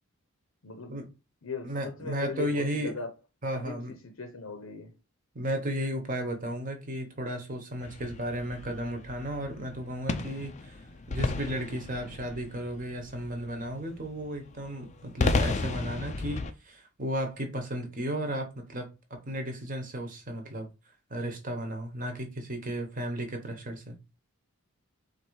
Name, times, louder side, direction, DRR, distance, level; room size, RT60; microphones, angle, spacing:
voice 1, 0.6-1.0 1.4-3.1 3.5-5.0, left 4 dB, 65° left, 0.7 m, -39 dB
voice 2, 1.6-3.0 3.4-3.9 5.3-10.8 11.1-20.7 21.1-24.0, right 1 dB, 40° right, 1.0 m, -34 dB
sound 1, 7.8-16.5, left 3 dB, 30° left, 0.4 m, -34 dB
4.2 x 2.6 x 4.5 m
head